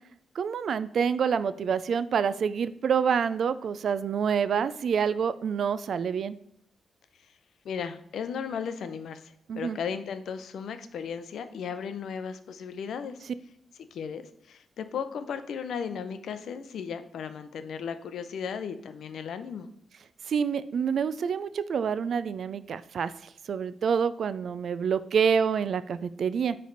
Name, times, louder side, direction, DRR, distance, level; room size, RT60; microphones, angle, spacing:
voice 1, 0.4-6.4 9.5-9.8 20.3-23.1 23.5-26.6, right 7 dB, 65° right, 14 dB, 0.3 m, -27 dB
voice 2, 7.6-13.2 13.9-14.2 14.5-19.7, left 7 dB, 75° left, 10 dB, 0.6 m, -35 dB
9.3 x 3.3 x 3.9 m, 0.72 s
cardioid pair, 105°, 0 cm